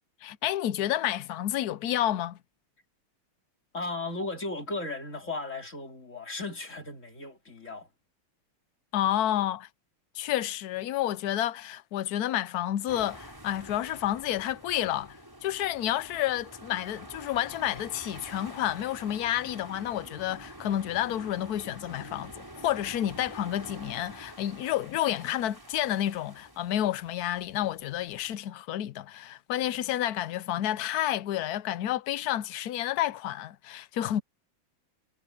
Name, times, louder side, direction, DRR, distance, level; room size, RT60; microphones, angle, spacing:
voice 1, 0.2-2.4 8.9-9.7 10.1-34.2, left 12 dB, 65° left, 1.0 m, -30 dB
voice 2, 3.7-7.9, left 2 dB, 35° left, 3.8 m, -36 dB
sound 1, 12.9-28.3, right 1 dB, 10° right, 5.1 m, -47 dB
omnidirectional pair, 2.2 m